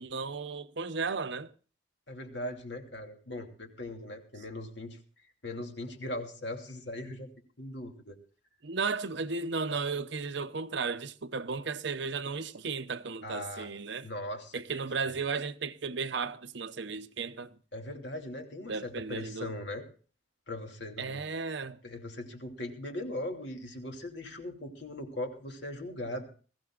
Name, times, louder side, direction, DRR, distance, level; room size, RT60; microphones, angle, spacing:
voice 1, 0.0-1.5 8.6-14.1 14.5-17.5 18.7-19.5 21.0-21.8, right 4 dB, 60° right, 0.8 m, -34 dB
voice 2, 2.1-5.0 5.4-7.3 7.6-8.2 13.2-13.7 14.0-14.6 15.0-15.2 17.7-19.9 20.5-21.3 21.8-26.3, left 1 dB, 60° left, 2.8 m, -39 dB
21.5 x 15.5 x 2.4 m
head